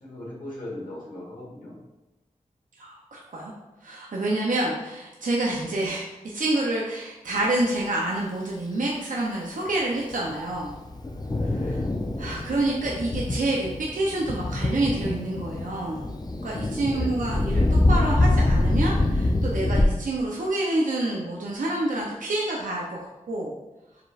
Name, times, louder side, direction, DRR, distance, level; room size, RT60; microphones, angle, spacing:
voice 1, 0.0-1.8 11.5-11.8 16.8-17.2, left 1 dB, 80° left, -6 dB, 1.3 m, -38 dB
voice 2, 2.8-3.5 3.8-10.7 11.4-11.8 12.2-16.1 16.4-23.5, right 2 dB, 85° right, -3 dB, 0.6 m, -28 dB
Thunder, 10.1-19.8, left 2 dB, 30° left, 0.5 m, -25 dB
4.8 x 3.2 x 2.3 m, 1.0 s
wide cardioid pair, 50°, 13 cm